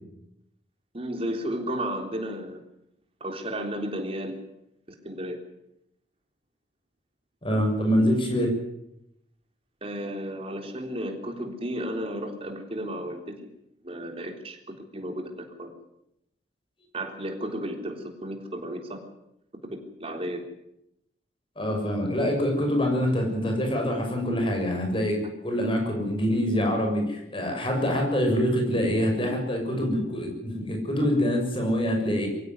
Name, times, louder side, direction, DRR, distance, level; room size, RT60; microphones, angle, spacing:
voice 1, 0.9-2.6 3.2-4.4 5.0-5.4 9.8-13.4 13.8-14.6 14.9-15.7 16.9-19.0 19.6-20.4, equal, 35° right, 4 dB, 3.7 m, -33 dB
voice 2, 7.4-8.5 21.6-32.3, equal, 30° left, 2 dB, 6.7 m, -25 dB
23.0 x 16.0 x 9.6 m, 0.81 s
head